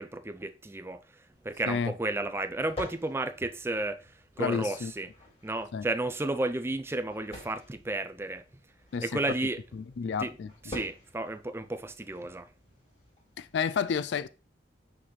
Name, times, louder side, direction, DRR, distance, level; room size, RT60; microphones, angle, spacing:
voice 1, 0.0-5.1 5.4-8.4 9.0-9.6 10.2-10.3 10.7-12.5, right 2 dB, 15° right, 0.4 m, -33 dB
sound 1, 1.3-13.7, left 1 dB, 30° left, 3.9 m, -49 dB
voice 2, 4.4-4.9 5.7-5.9 8.9-9.2 9.7-10.7 13.4-14.3, left 6 dB, 75° left, 0.4 m, -31 dB
6.1 x 5.9 x 3.2 m
head